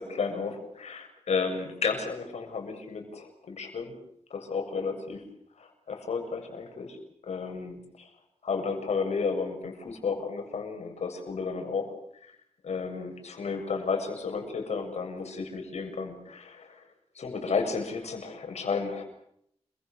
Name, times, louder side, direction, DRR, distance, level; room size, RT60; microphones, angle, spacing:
voice 1, 0.0-4.0 4.3-5.3 5.6-7.0 7.2-8.1 8.4-11.9 12.2-12.4 12.6-16.9 17.1-19.0, left 5 dB, 90° left, 5 dB, 7.1 m, -32 dB
29.5 x 24.0 x 6.8 m, 0.71 s
wide cardioid pair, 155°, 11 cm